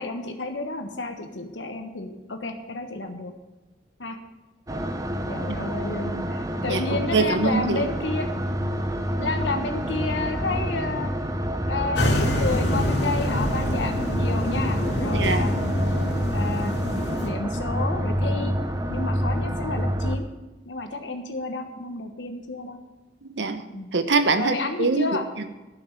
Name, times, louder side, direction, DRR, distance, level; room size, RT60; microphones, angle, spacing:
voice 1, 0.0-3.3 4.0-4.2 5.3-8.3 9.2-11.1 11.7-15.5 16.3-16.7 17.2-18.6 18.9-20.3 20.6-22.8 23.7-23.9 24.3-25.2, left 3 dB, 85° left, 6 dB, 1.3 m, -31 dB
sound 1, 4.7-20.2, equal, 20° right, 0.7 m, -27 dB
voice 2, 6.7-7.9 15.1-15.5 23.2-23.6 23.9-25.5, right 3 dB, 80° right, 9 dB, 1.1 m, -24 dB
sound 2, 11.9-17.3, left 1 dB, 70° left, 2.2 m, -27 dB
11.5 x 6.1 x 9.1 m, 1.1 s
head